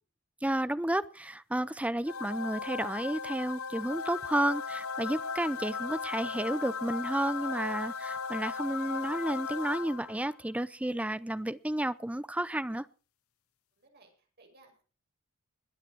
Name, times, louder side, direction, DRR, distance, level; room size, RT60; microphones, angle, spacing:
voice 1, 0.4-12.9, right 1 dB, 5° right, 16 dB, 0.6 m, -32 dB
sound 1, 2.1-10.3, left 5 dB, 75° left, 0.7 m, -37 dB
voice 2, 13.8-14.8, right 2 dB, 50° right, 2 dB, 6.2 m, -60 dB
21.5 x 8.8 x 4.7 m, 0.36 s
head